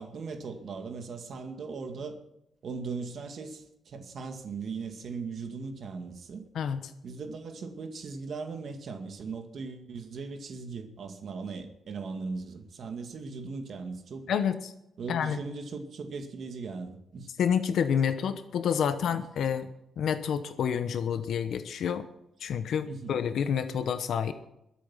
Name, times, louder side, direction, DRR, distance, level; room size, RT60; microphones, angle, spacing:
voice 1, 0.0-2.2 2.6-6.4 7.0-14.3 15.0-17.3 19.1-19.2 22.8-23.2, right 4 dB, 50° right, 2.1 m, -38 dB
voice 2, 14.3-14.7 15.1-15.4 17.4-19.7 20.0-22.1 22.4-24.3, left 8 dB, 70° left, 1.1 m, -28 dB
22.5 x 8.5 x 5.8 m
wide cardioid pair, 180°, 0 cm